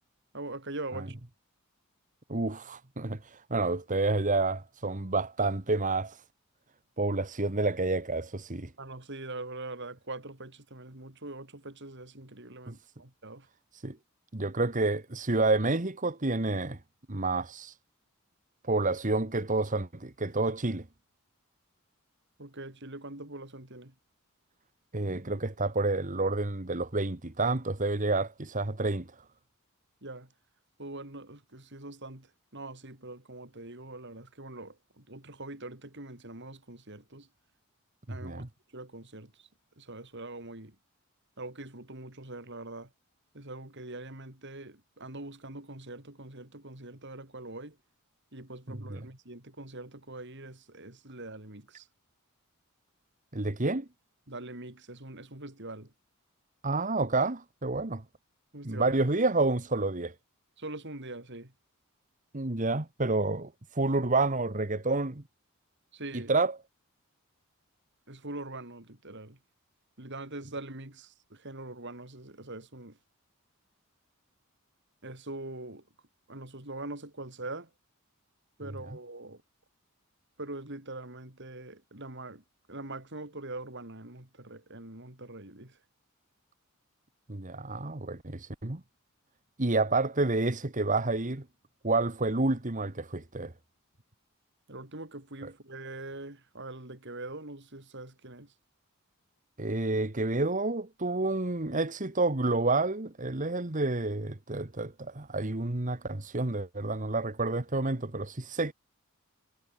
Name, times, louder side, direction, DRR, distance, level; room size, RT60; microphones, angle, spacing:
voice 1, 0.3-1.1 8.8-13.5 22.4-23.9 30.0-30.3 30.8-32.3 32.5-37.3 38.1-38.5 38.7-39.3 39.8-40.7 41.4-42.9 43.3-47.8 48.3-51.9 54.3-55.9 58.5-59.0 60.6-61.5 65.9-66.3 68.1-69.4 70.0-73.0 75.0-75.8 76.3-77.7 78.6-79.4 80.4-82.4 82.7-85.8 94.7-98.5, right 2 dB, 55° right, 4.6 m, -43 dB
voice 2, 2.3-6.2 7.0-8.7 12.7-12.8 13.7-14.0 14.3-16.8 17.1-17.8 18.6-20.9 24.9-29.1 38.1-38.5 48.7-49.1 53.3-53.9 56.6-58.0 58.6-60.1 62.3-65.2 66.1-66.6 78.9-79.0 87.3-88.8 89.6-91.4 91.8-93.5 95.4-95.5 99.6-108.7, right 2 dB, 35° right, 1.5 m, -29 dB
head